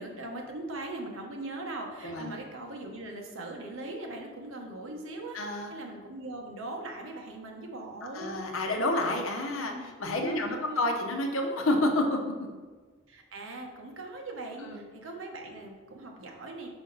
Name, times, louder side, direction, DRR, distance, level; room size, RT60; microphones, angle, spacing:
voice 1, 0.0-5.4 5.7-8.3 9.5-9.9 10.2-10.9 13.1-16.7, right 2 dB, 75° right, 1 dB, 1.0 m, -40 dB
voice 2, 5.3-5.7 8.1-12.5 14.6-14.8, left 1 dB, 80° left, 3 dB, 0.9 m, -29 dB
5.1 x 5.0 x 3.9 m, 1.4 s
head